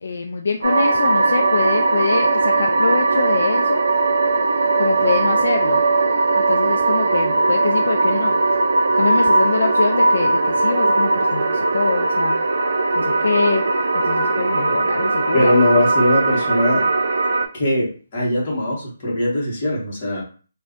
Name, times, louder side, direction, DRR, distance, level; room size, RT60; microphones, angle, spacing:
voice 1, 0.0-3.8 4.8-5.8 6.5-8.4 9.0-12.4 13.0-13.6 13.9-15.5, left 4 dB, 55° left, 3 dB, 0.3 m, -24 dB
sound 1, 0.6-17.5, right 3 dB, 75° right, 0.4 m, -19 dB
voice 2, 15.3-16.9 17.5-20.2, left 1 dB, 25° left, -5 dB, 1.0 m, -20 dB
2.5 x 2.2 x 3.5 m, 0.38 s
hypercardioid pair, 180°, 0 cm